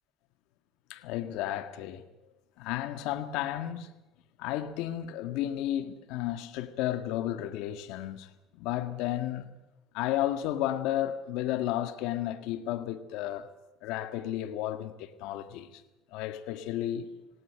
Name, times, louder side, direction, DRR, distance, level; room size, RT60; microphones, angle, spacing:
voice 1, 0.9-2.0 2.6-3.9 4.4-8.3 8.6-9.5 9.9-13.5 13.8-15.8 16.1-17.1, left 12 dB, 80° left, 1.6 m, -33 dB
19.5 x 18.5 x 8.8 m
cardioid pair, 140°, 0 cm